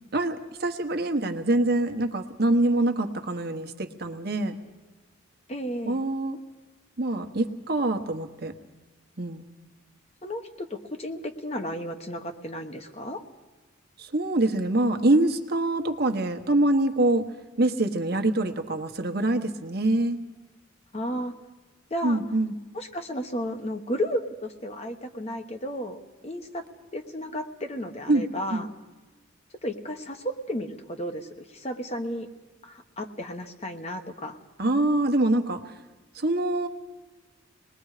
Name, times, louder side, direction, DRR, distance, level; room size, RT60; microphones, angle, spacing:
voice 1, 0.1-4.6 5.9-6.4 7.0-8.5 9.2-9.4 14.0-17.3 17.6-20.2 22.0-22.5 28.1-28.6 34.6-35.6 36.1-36.7, right 2 dB, 50° right, 6 dB, 1.2 m, -25 dB
voice 2, 5.5-6.0 10.2-13.2 20.9-21.3 21.9-22.2 22.7-26.0 26.2-26.6 26.9-28.7 29.6-32.3 32.6-34.4, equal, 30° left, 6 dB, 1.2 m, -33 dB
26.0 x 20.5 x 5.0 m, 1.2 s
head